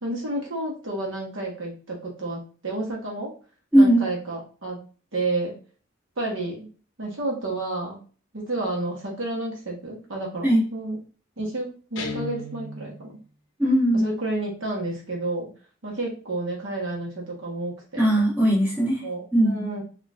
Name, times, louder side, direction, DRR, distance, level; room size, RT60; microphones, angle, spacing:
voice 1, 0.0-3.3 3.7-4.8 5.1-5.5 6.2-6.7 7.0-8.0 8.3-11.0 11.4-13.2 13.9-15.5 15.8-18.0 19.0-19.8, right 2 dB, 70° right, -1 dB, 1.0 m, -30 dB
voice 2, 3.7-4.1 10.4-10.6 13.6-14.1 18.0-19.0 19.3-19.6, right 1 dB, 10° right, -5 dB, 0.8 m, -19 dB
Guitar, 12.0-13.1, left 3 dB, 60° left, 0.6 m, -35 dB
3.7 x 2.4 x 2.3 m, 0.38 s
head